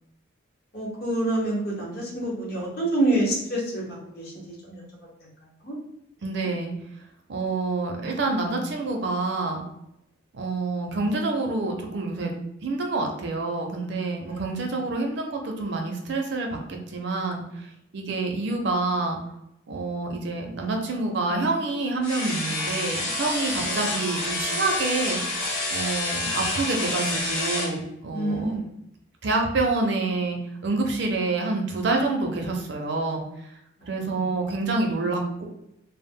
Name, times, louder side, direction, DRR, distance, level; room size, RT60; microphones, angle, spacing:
voice 1, 0.7-4.8 5.6-5.8 6.4-6.5 14.2-14.6 23.6-23.9 28.1-28.7 33.8-34.6, right 1 dB, 50° left, -3 dB, 0.8 m, -28 dB
voice 2, 6.2-6.7 7.3-9.6 10.3-12.3 12.6-17.6 17.9-19.2 19.7-25.4 25.7-28.5 29.2-30.4 30.6-33.2 33.9-35.4, right 3 dB, 55° right, 2 dB, 0.4 m, -27 dB
sound 1, 22.0-27.7, left 2 dB, 85° left, 1.0 m, -28 dB
2.0 x 2.0 x 3.5 m, 0.80 s
head